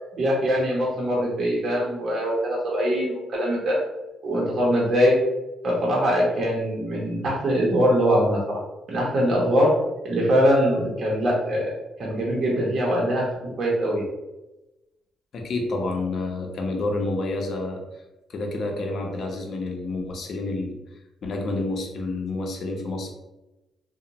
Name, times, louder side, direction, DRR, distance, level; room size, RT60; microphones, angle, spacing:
voice 1, 0.1-3.8 4.2-5.2 5.6-8.6 8.9-9.7 10.0-11.7 12.0-13.3 13.6-14.1, equal, 50° right, -4 dB, 0.7 m, -22 dB
voice 2, 15.3-17.8 18.3-20.8 21.2-23.1, left 2 dB, 60° left, 2 dB, 0.6 m, -29 dB
2.5 x 2.1 x 2.9 m, 0.99 s
cardioid pair, 90°, 0 cm